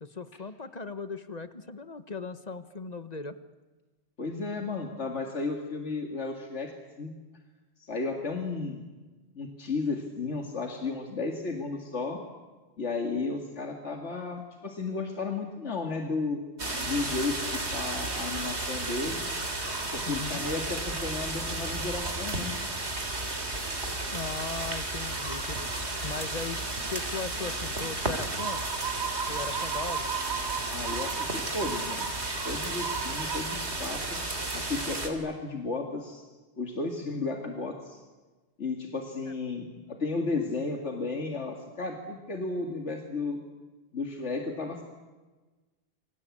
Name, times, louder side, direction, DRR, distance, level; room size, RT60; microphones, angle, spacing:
voice 1, 0.0-3.4 16.8-17.2 20.1-20.5 24.1-25.7 26.0-26.6 26.9-28.6 29.3-30.1 37.0-37.2 39.3-39.4, left 4 dB, 35° left, 11 dB, 1.3 m, -38 dB
voice 2, 4.2-6.7 7.0-7.1 7.8-8.8 9.4-12.2 12.8-16.4 16.8-19.2 19.9-22.5 30.7-32.1 32.4-34.2 34.5-36.3 36.6-38.0 38.6-43.4 43.9-44.8, left 3 dB, 90° left, 2 dB, 2.6 m, -33 dB
sound 1, 16.6-35.1, right 2 dB, 75° right, 3.5 m, -32 dB
29.0 x 23.5 x 8.6 m, 1.3 s
omnidirectional pair, 1.2 m